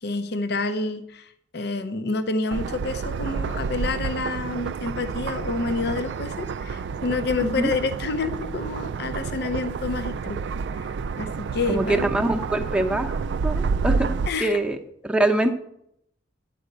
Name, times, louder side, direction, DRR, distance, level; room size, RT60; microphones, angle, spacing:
voice 1, 0.0-10.4 10.7-10.9 11.2-12.1 14.3-14.6, left 3 dB, 60° left, 10 dB, 0.6 m, -28 dB
sound 1, 2.5-14.3, right 5 dB, 65° right, 0.3 m, -29 dB
voice 2, 11.7-14.8 15.0-15.6, right 1 dB, 5° right, 4 dB, 0.7 m, -24 dB
9.2 x 5.0 x 7.8 m, 0.74 s
head